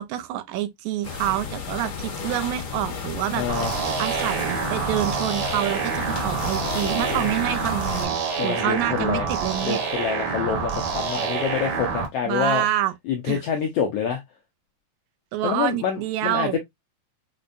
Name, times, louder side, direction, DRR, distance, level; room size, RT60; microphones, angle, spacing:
voice 1, 0.0-3.4 4.0-8.2 8.4-9.8 12.3-12.9 13.3-13.4 15.3-16.6, right 13 dB, 80° right, 1.9 m, -27 dB
sound 1, 1.0-8.1, left 6 dB, 55° left, 1.8 m, -32 dB
voice 2, 3.4-3.7 6.8-7.3 8.4-9.3 9.6-12.6 13.1-14.2 15.4-16.6, left 7 dB, 80° left, 1.3 m, -27 dB
sound 2, 3.5-12.1, right 5 dB, 60° right, 2.0 m, -27 dB
6.1 x 2.1 x 2.5 m
omnidirectional pair, 3.4 m